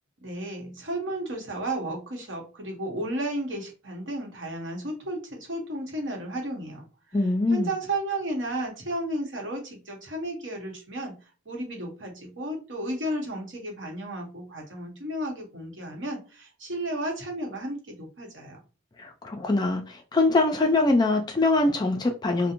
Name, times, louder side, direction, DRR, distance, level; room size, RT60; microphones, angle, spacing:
voice 1, 0.2-6.9 7.5-11.2 11.5-18.6, right 1 dB, 75° right, 0.9 m, -33 dB
voice 2, 7.1-7.7 19.0-22.5, left 2 dB, 20° left, 0.3 m, -23 dB
2.5 x 2.1 x 2.9 m
head